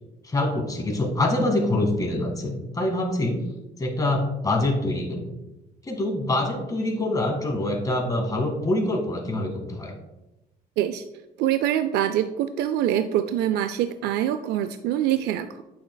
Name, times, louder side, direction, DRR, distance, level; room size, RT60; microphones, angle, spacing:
voice 1, 0.2-3.5 3.8-5.3 5.8-9.9, left 1 dB, 20° left, 1 dB, 1.8 m, -25 dB
voice 2, 11.4-15.6, right 11 dB, 75° right, 9 dB, 0.4 m, -24 dB
8.6 x 6.6 x 2.2 m, 0.97 s
cardioid pair, 110°, 17 cm